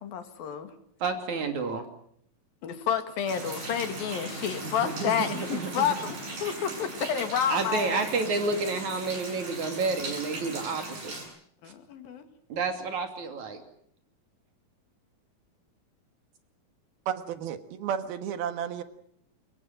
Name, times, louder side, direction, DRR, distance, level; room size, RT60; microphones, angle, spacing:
voice 1, 0.0-0.7 2.6-8.0 11.6-12.3, left 8 dB, 75° left, 9 dB, 3.9 m, -30 dB
voice 2, 1.0-1.9 4.6-5.9 7.5-11.1 12.5-13.6, right 4 dB, 55° right, 6 dB, 4.0 m, -30 dB
sound 1, 3.3-11.2, right 2 dB, 70° right, 9.8 m, -38 dB
voice 3, 17.1-18.8, right 8 dB, 90° right, 10 dB, 3.5 m, -32 dB
24.5 x 21.5 x 7.6 m, 0.67 s
omnidirectional pair, 4.2 m